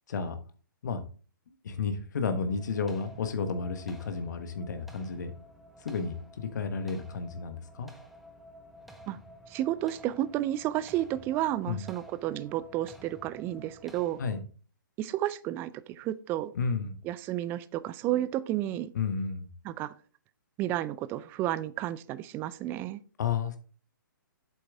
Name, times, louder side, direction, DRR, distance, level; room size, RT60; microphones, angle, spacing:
voice 1, 0.1-0.4 0.8-1.0 1.6-5.3 5.8-7.9 11.7-11.8 14.2-14.4 16.5-17.0 18.9-19.5 23.2-23.6, left 5 dB, 60° left, 1.2 m, -32 dB
sound 1, 2.5-14.4, equal, ahead, 1.0 m, -52 dB
voice 2, 9.5-14.2 15.0-16.5 17.0-18.9 19.6-19.9 20.6-23.0, right 13 dB, 20° right, 0.4 m, -31 dB
7.9 x 7.8 x 3.5 m
figure-of-eight pair, 125°, 11 cm